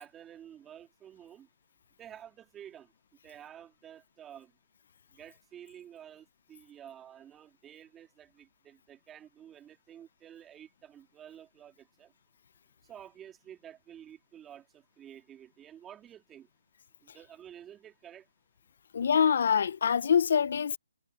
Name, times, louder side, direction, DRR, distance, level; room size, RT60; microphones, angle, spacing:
voice 1, 0.0-1.5 2.0-2.9 3.2-4.5 5.1-12.1 12.9-16.5 17.0-18.3, right 10 dB, 15° right, 2.7 m, -51 dB
voice 2, 18.9-20.8, left 7 dB, 55° left, 1.2 m, -25 dB
hypercardioid pair, 150°, 0 cm